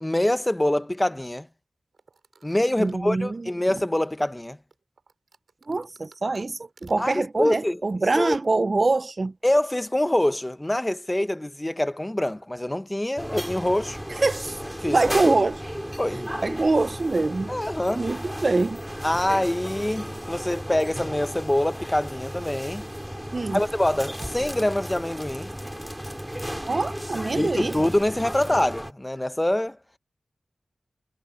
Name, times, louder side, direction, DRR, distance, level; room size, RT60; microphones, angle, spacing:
voice 1, 0.0-1.5 2.4-4.6 7.0-7.8 8.2-8.4 9.4-14.0 14.8-15.0 15.2-15.3 16.0-16.2 17.5-18.0 19.0-22.8 23.5-25.5 27.3-29.8, left 1 dB, 15° left, 0.9 m, -25 dB
sound 1, 1.9-4.2 4.7-7.3 8.2-9.3, right 4 dB, 85° right, 7.3 m, -51 dB
voice 2, 2.8-3.5 5.7-9.3 14.2-14.5 14.9-15.6 16.4-17.5 18.0-18.8 23.3-23.6 26.6-27.7, right 3 dB, 50° right, 0.4 m, -24 dB
sound 2, 13.2-28.9, equal, 5° right, 2.7 m, -34 dB
wide cardioid pair, 55°, 0 cm